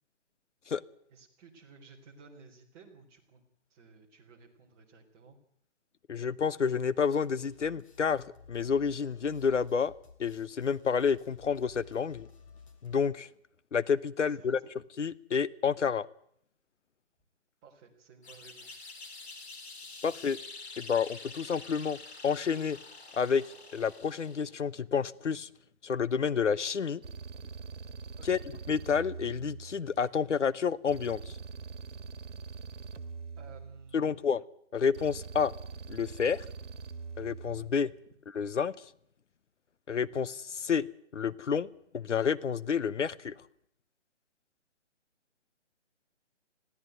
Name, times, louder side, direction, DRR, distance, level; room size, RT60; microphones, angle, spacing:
voice 1, 1.1-3.4 3.7-5.4 14.3-14.6 17.6-18.8 28.2-28.5 33.4-34.2 37.9-38.0, right 4 dB, 15° right, -2 dB, 3.6 m, -55 dB
voice 2, 6.1-8.2 8.5-9.9 10.2-12.3 12.8-13.3 13.7-14.6 15.0-16.1 20.0-20.4 20.8-22.0 22.2-22.8 23.1-23.4 23.7-25.5 25.8-27.0 28.3-28.4 28.7-31.3 33.9-34.4 34.7-35.5 35.9-36.4 37.2-37.9 38.3-38.7 39.9-40.9 41.1-43.3, left 6 dB, 85° left, 18 dB, 1.0 m, -29 dB
sound 1, 7.0-13.0, left 5 dB, 30° left, 3.0 m, -55 dB
sound 2, 18.2-24.6, left 3 dB, 65° left, 4.8 m, -47 dB
sound 3, 27.0-30.1 30.9-34.2 34.9-37.8, right 5 dB, 85° right, 1.8 m, -43 dB
21.0 x 16.0 x 9.3 m, 0.71 s
hypercardioid pair, 165°, 35 cm